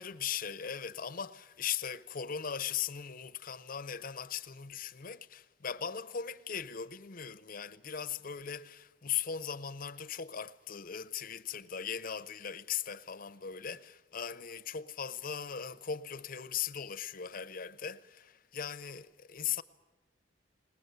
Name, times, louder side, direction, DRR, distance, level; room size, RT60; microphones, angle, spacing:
voice 1, 0.0-19.6, left 8 dB, 50° left, 0.7 m, -39 dB
20.0 x 20.0 x 8.1 m
head